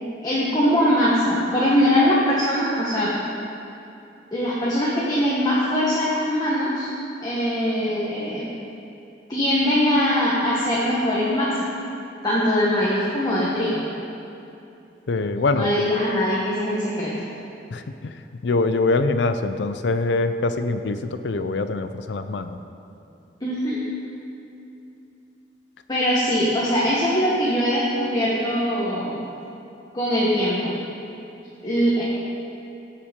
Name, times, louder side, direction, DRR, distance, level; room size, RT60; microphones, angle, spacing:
voice 1, 0.2-3.1 4.3-6.9 7.2-8.5 9.3-11.7 12.2-13.8 15.5-17.1 23.4-23.8 25.9-29.3 29.9-30.8 31.6-32.0, equal, 20° left, -7 dB, 1.4 m, -22 dB
voice 2, 15.1-15.7 17.7-22.6, left 3 dB, 75° left, 10 dB, 0.5 m, -24 dB
16.0 x 5.7 x 5.2 m, 2.7 s
head